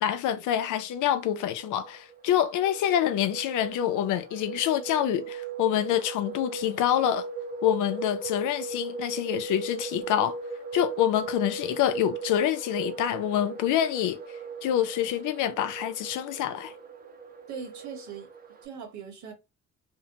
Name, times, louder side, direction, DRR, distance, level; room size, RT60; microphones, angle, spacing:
voice 1, 0.0-7.3 7.6-10.4 10.7-14.2 14.6-16.7, left 11 dB, 80° left, 0.5 m, -26 dB
sound 1, 0.9-18.7, right 4 dB, 30° right, 0.6 m, -38 dB
voice 2, 17.5-18.3 18.6-19.3, right 6 dB, 70° right, 1.1 m, -40 dB
2.7 x 2.1 x 2.8 m
cardioid pair, 90°, 30 cm